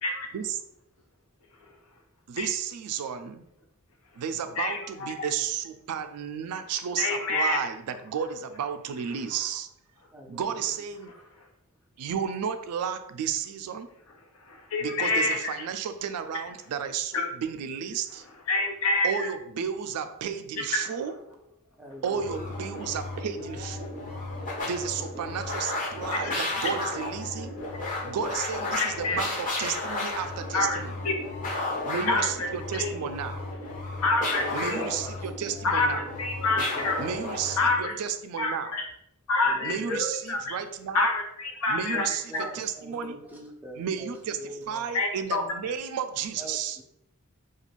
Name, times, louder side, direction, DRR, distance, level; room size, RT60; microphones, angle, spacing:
voice 1, 2.3-3.4 4.2-9.7 10.3-11.1 12.0-13.9 14.8-18.2 19.0-21.1 22.0-23.9 24.6-27.6 28.0-31.0 31.8-33.4 34.5-36.1 37.0-38.8 39.6-41.1 41.7-43.2 43.7-46.8, right 7 dB, 85° right, 10 dB, 0.3 m, -32 dB
voice 2, 4.6-5.1 7.0-7.6 14.5-15.5 17.1-17.2 18.5-19.3 26.1-26.3 27.7-27.8 28.8-29.2 30.5-30.8 31.0-31.1 32.1-32.5 32.8-32.9 34.0-34.9 35.6-37.0 37.6-37.9 38.4-38.9 39.3-40.6 40.9-42.0 42.3-42.4 44.9-45.4, left 3 dB, 75° left, 3 dB, 0.6 m, -27 dB
voice 3, 10.1-10.7 21.8-22.5 34.2-35.1 36.5-37.1 39.4-40.0 41.9-44.8 46.4-46.8, right 1 dB, 10° right, 0 dB, 0.4 m, -42 dB
sound 1, 22.1-37.8, left 2 dB, 35° left, 0.8 m, -33 dB
2.5 x 2.3 x 3.0 m, 0.78 s
head